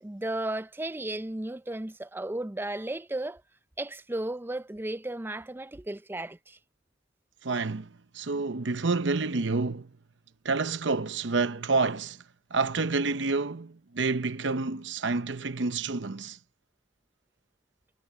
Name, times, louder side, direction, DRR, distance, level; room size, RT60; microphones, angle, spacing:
voice 1, 0.0-3.4 3.8-6.6, right 1 dB, 10° right, 0.5 m, -34 dB
voice 2, 7.4-7.9 8.1-9.9 10.4-12.2 12.5-16.4, right 3 dB, 70° right, 0.8 m, -28 dB
head